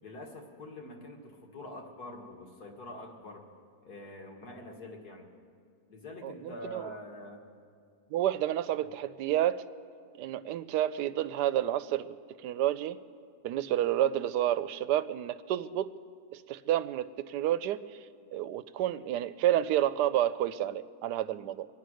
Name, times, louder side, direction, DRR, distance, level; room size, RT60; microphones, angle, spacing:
voice 1, 0.0-3.5 3.8-5.3 5.9-7.4, left 1 dB, 70° left, 1 dB, 2.3 m, -45 dB
voice 2, 6.2-6.9 8.1-9.6 10.2-12.2 12.4-13.0 13.4-15.9 16.3-17.8 18.3-21.7, right 12 dB, 85° right, 15 dB, 1.2 m, -30 dB
24.0 x 9.3 x 6.3 m, 2.2 s
omnidirectional pair, 1.7 m